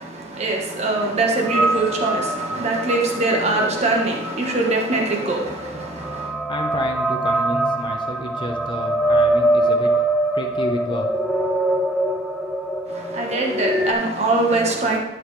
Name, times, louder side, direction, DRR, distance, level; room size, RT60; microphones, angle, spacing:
voice 1, 0.0-6.3 12.9-15.0, right 2 dB, 35° right, 0 dB, 1.3 m, -22 dB
sound 1, 1.5-13.9, right 1 dB, 5° right, 0.5 m, -23 dB
voice 2, 6.5-9.9 10.3-11.1, left 1 dB, 25° left, 3 dB, 0.8 m, -30 dB
11.5 x 5.8 x 3.3 m, 1.0 s
head